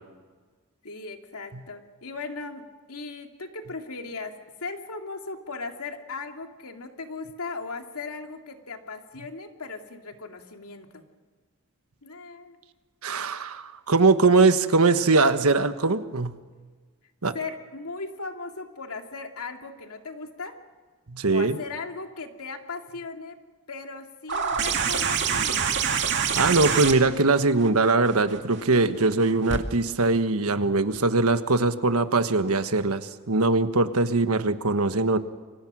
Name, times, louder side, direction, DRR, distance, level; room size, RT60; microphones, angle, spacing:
voice 1, 0.8-4.3 4.6-11.0 12.0-12.6 17.3-20.5 21.3-23.4 23.7-25.7, left 3 dB, 85° left, 4 dB, 2.5 m, -37 dB
voice 2, 13.0-16.4 17.2-17.3 21.1-21.6 26.3-35.2, right 3 dB, 85° right, 10 dB, 1.4 m, -21 dB
sound 1, 24.3-29.6 30.9-31.0, right 7 dB, 55° right, 2.4 m, -27 dB
29.5 x 24.0 x 6.3 m, 1.4 s
head